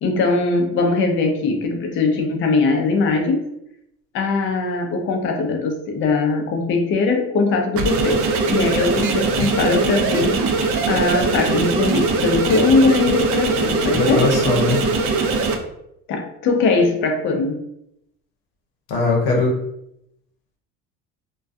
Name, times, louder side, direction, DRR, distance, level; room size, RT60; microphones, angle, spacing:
voice 1, 0.0-3.5 4.1-10.4 10.9-14.3 16.1-17.6, left 3 dB, 40° left, 3 dB, 0.5 m, -20 dB
sound 1, 7.7-15.6, right 4 dB, 45° right, 0.4 m, -21 dB
voice 2, 13.9-14.8 18.9-19.5, left 3 dB, 80° left, -1 dB, 0.8 m, -19 dB
2.2 x 2.2 x 2.5 m, 0.79 s
cardioid pair, 130°, 33 cm